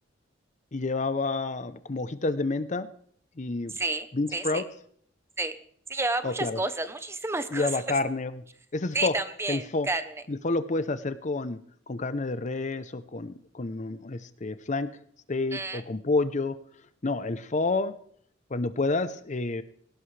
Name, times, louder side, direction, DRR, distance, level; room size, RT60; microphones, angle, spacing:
voice 1, 0.7-2.9 3.4-3.8 4.1-4.7 6.2-6.6 7.5-8.4 8.7-9.1 9.5-9.9 10.3-11.6 11.9-14.9 15.3-16.6 17.0-17.9 18.5-19.6, left 3 dB, 40° left, 13 dB, 0.7 m, -29 dB
voice 2, 3.7-4.1 4.3-4.6 5.4-5.6 5.9-7.8 8.9-10.2 15.5-15.8, right 2 dB, 15° right, 11 dB, 0.8 m, -30 dB
18.0 x 17.0 x 3.3 m, 0.62 s
head